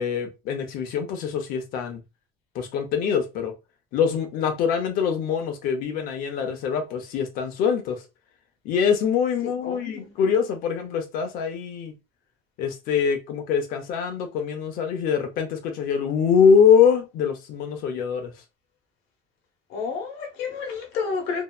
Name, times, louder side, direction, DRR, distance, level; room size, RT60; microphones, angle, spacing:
voice 1, 0.0-2.0 2.5-3.5 3.9-8.0 8.6-11.9 12.6-18.3, left 7 dB, 55° left, 0.7 m, -23 dB
voice 2, 9.4-10.1 19.7-21.4, left 5 dB, 85° left, 1.0 m, -31 dB
2.7 x 2.2 x 2.3 m
cardioid pair, 170°, 17 cm